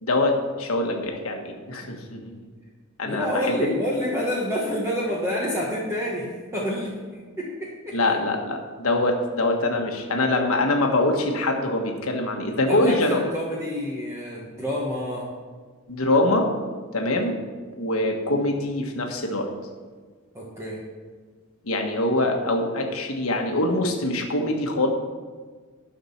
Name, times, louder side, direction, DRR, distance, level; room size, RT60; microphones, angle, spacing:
voice 1, 0.0-2.3 3.0-3.6 7.9-13.3 15.9-16.5 16.9-17.3 17.7-19.5 21.6-24.9, left 2 dB, 75° left, 2 dB, 1.5 m, -24 dB
voice 2, 3.0-8.2 12.7-15.3 20.3-20.8, left 1 dB, 15° right, -5 dB, 1.4 m, -28 dB
11.5 x 5.9 x 5.8 m, 1.5 s
head